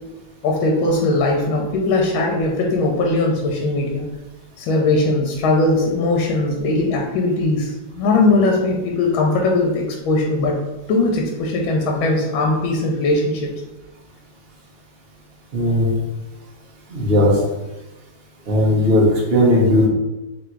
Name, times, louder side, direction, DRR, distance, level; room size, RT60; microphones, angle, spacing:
voice 1, 0.4-4.1 4.6-10.6 10.9-13.5, left 2 dB, 85° left, 0 dB, 1.4 m, -19 dB
voice 2, 15.5-15.9 16.9-17.4 18.5-19.9, left 1 dB, 50° right, -3 dB, 0.7 m, -16 dB
3.4 x 2.6 x 4.4 m, 1.0 s
omnidirectional pair, 2.2 m